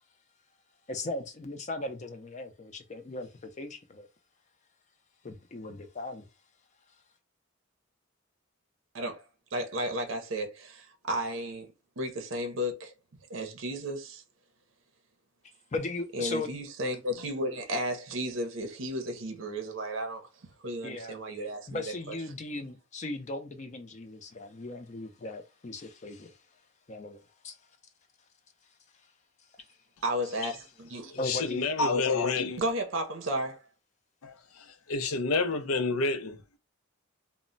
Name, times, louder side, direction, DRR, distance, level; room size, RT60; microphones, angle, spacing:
voice 1, 0.9-4.1 5.2-6.3 15.7-16.5 20.8-21.2 21.7-26.4 26.9-27.6 31.2-31.7, left 2 dB, 35° left, 0.4 m, -37 dB
voice 2, 9.5-11.7 12.0-12.9 13.3-14.2 16.1-20.2 20.6-22.1 30.0-31.1 32.6-33.6, equal, 65° right, 0.6 m, -33 dB
voice 3, 31.1-32.6 34.2-36.4, left 3 dB, 90° left, 0.5 m, -29 dB
2.1 x 2.1 x 3.7 m
head